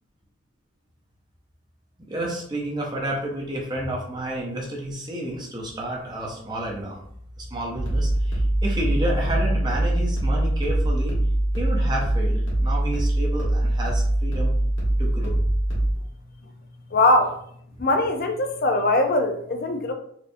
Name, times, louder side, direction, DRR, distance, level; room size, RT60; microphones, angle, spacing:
voice 1, 2.1-7.0 7.4-11.2 11.6-14.5 15.0-15.4, right 1 dB, 20° right, -2 dB, 0.6 m, -30 dB
sound 1, 7.8-15.9, right 1 dB, 60° left, 1.5 m, -23 dB
voice 2, 16.9-17.4 17.8-19.9, left 2 dB, 45° left, 5 dB, 0.4 m, -21 dB
4.2 x 2.5 x 2.5 m, 0.67 s
head